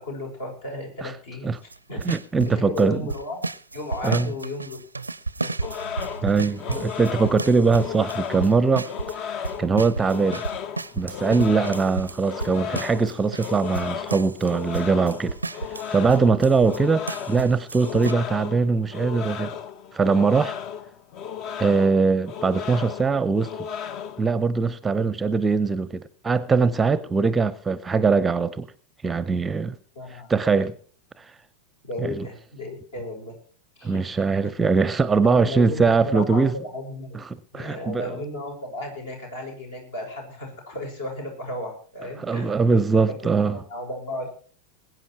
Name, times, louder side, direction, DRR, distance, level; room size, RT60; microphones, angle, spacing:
voice 1, 0.0-1.5 1.9-2.0 2.4-3.4 3.7-4.8 5.4-5.9 29.9-30.7 31.8-33.3 33.8-34.0 35.2-37.2 37.5-42.5 43.0-44.3, left 1 dB, 65° left, 6.2 m, -34 dB
sound 1, 1.7-2.8 3.1-9.2 9.4-16.8 17.1-18.1, right 3 dB, 80° right, 0.5 m, -32 dB
voice 2, 2.1-3.0 4.0-4.3 6.2-8.9 9.2-9.3 9.6-10.4 11.0-15.4 15.9-19.5 19.9-20.5 21.6-23.5 24.2-28.7 29.0-29.7 30.3-30.7 31.2-31.3 32.0-32.3 33.8-36.5 37.3-38.2 42.2-43.6, right 4 dB, 15° right, 0.7 m, -21 dB
sound 2, 5.6-24.4, left 8 dB, 40° left, 0.8 m, -35 dB
21.5 x 9.4 x 4.5 m
figure-of-eight pair, 90°, 0 cm